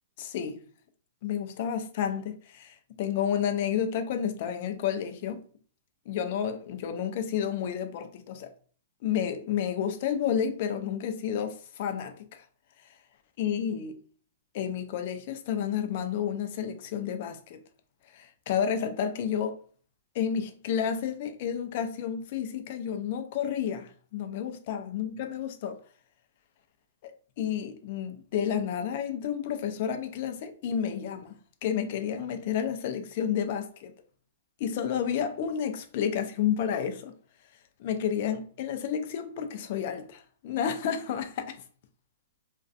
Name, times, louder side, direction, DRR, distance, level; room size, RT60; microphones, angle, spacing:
voice 1, 0.2-0.6 1.2-5.4 6.1-8.5 9.0-12.4 13.4-14.0 14.5-17.6 18.1-19.6 20.1-25.8 27.0-27.1 27.4-33.9 34.6-37.1 37.8-41.6, left 8 dB, 50° left, 0.4 m, -31 dB
2.5 x 2.2 x 2.4 m
hypercardioid pair, 125°, 0 cm